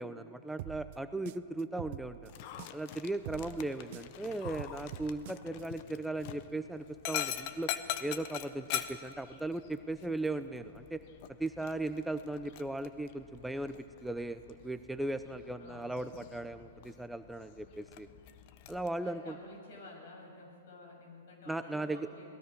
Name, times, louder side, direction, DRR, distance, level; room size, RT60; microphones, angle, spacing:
voice 1, 0.0-2.3 2.7-7.7 8.0-11.0 11.4-13.8 14.0-18.1 18.7-19.3 21.5-22.1, right 2 dB, 5° right, 10 dB, 0.6 m, -37 dB
sound 1, 0.6-2.9 3.2-5.6, right 17 dB, 50° right, 0.5 m, -45 dB
Dog, 2.2-18.9, left 11 dB, 50° left, 1.1 m, -44 dB
voice 2, 15.6-16.6 19.0-22.3, left 2 dB, 65° left, 0 dB, 7.7 m, -52 dB
27.5 x 19.0 x 6.2 m, 2.5 s
hypercardioid pair, 125°, 0 cm